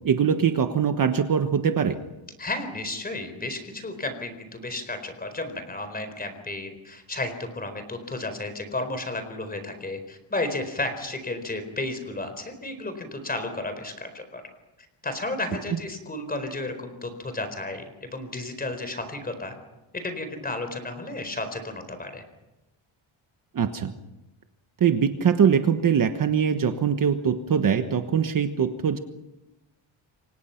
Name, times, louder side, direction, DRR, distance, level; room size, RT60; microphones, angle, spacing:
voice 1, 0.0-2.0 23.5-23.9 24.8-29.0, right 7 dB, 40° right, 7 dB, 1.3 m, -22 dB
voice 2, 2.4-14.4 15.0-19.6 20.0-22.2, left 2 dB, 20° left, 8 dB, 4.4 m, -33 dB
29.0 x 24.5 x 5.9 m, 0.98 s
wide cardioid pair, 170°, 49 cm